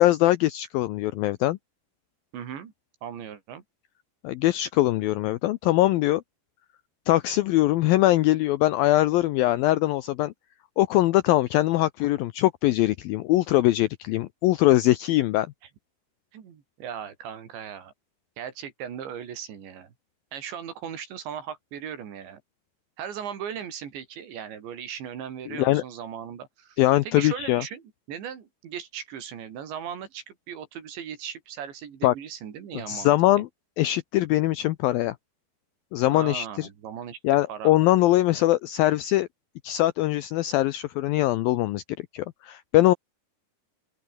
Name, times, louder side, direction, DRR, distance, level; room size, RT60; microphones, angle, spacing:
voice 1, 0.0-1.6 4.2-6.2 7.1-10.3 10.8-15.5 25.5-25.8 26.8-27.6 32.0-32.1 32.9-33.5 33.8-35.2 35.9-36.7 37.2-39.3 39.6-41.8 42.1-42.9, left 16 dB, 80° left, 2.1 m, -22 dB
voice 2, 2.3-2.7 3.0-3.6 16.3-17.9 18.4-19.9 20.3-22.4 23.0-33.4 36.1-37.2 37.5-37.7, right 8 dB, 85° right, 5.6 m, -38 dB
open air
omnidirectional pair, 5.0 m